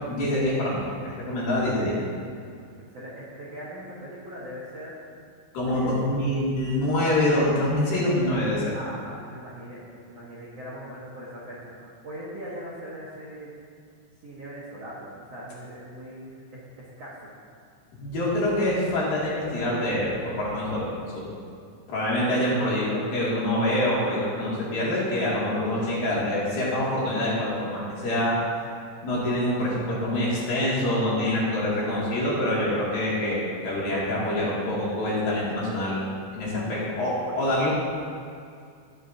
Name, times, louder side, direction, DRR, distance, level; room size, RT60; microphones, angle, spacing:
voice 1, 0.0-2.0 5.5-8.7 18.0-21.2 21.9-28.4 29.0-36.0 36.3-37.1 37.4-37.7, left 1 dB, 55° left, -7 dB, 3.7 m, -25 dB
voice 2, 2.9-5.0 5.7-5.9 8.7-13.5 14.2-17.3 31.8-32.1 36.4-36.8 37.2-37.3, equal, 90° right, -7 dB, 1.4 m, -40 dB
20.0 x 7.4 x 2.8 m, 2.3 s
omnidirectional pair, 5.3 m